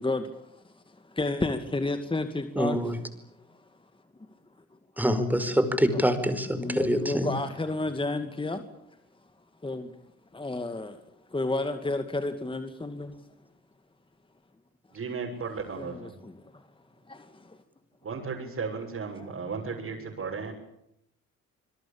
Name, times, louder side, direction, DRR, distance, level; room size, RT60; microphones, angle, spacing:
voice 1, 0.0-2.8 3.5-3.6 5.6-6.0 6.6-8.6 9.6-9.9 10.3-11.0 11.3-13.2 15.8-16.6 17.1-17.6 19.2-19.3 20.3-20.4, left 2 dB, 15° left, 2.3 m, -32 dB
voice 2, 2.6-3.0 5.0-7.3, equal, 5° right, 5.0 m, -25 dB
voice 3, 14.9-16.1 18.0-20.5, right 5 dB, 50° right, 7.1 m, -35 dB
27.5 x 21.5 x 8.7 m
cardioid pair, 90°, 30 cm